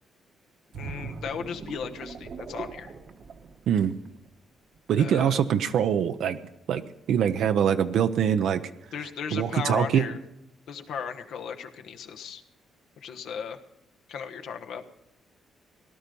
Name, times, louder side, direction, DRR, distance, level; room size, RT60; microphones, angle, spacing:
voice 1, 0.7-2.9 5.0-5.4 8.9-10.2 10.7-12.4 13.0-13.6 14.1-14.8, left 7 dB, 75° left, 5 dB, 1.2 m, -36 dB
sound 1, 0.7-4.3 4.8-5.0, right 5 dB, 55° right, 1.2 m, -40 dB
voice 2, 4.9-6.4 6.7-6.8 7.1-8.6 9.3-10.1, right 8 dB, 75° right, 8 dB, 0.7 m, -23 dB
17.5 x 12.0 x 5.4 m, 0.85 s
cardioid pair, 90°, 0 cm